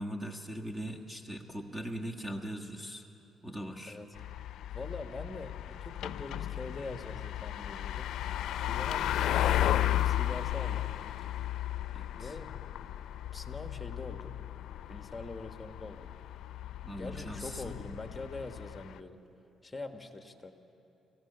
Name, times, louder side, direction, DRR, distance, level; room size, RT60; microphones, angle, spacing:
voice 1, 0.0-3.0 3.4-4.0 11.9-12.3 16.8-17.7, right 1 dB, 15° right, 3 dB, 1.5 m, -40 dB
sound 1, 4.1-19.0, left 12 dB, 80° left, 0.4 m, -34 dB
voice 2, 4.7-8.1 8.7-10.9 12.1-12.5 13.3-14.3 14.9-16.1 16.9-19.2 19.6-20.5, left 2 dB, 15° left, 6 dB, 1.4 m, -43 dB
25.5 x 15.5 x 6.8 m, 3.0 s
cardioid pair, 90°, 0 cm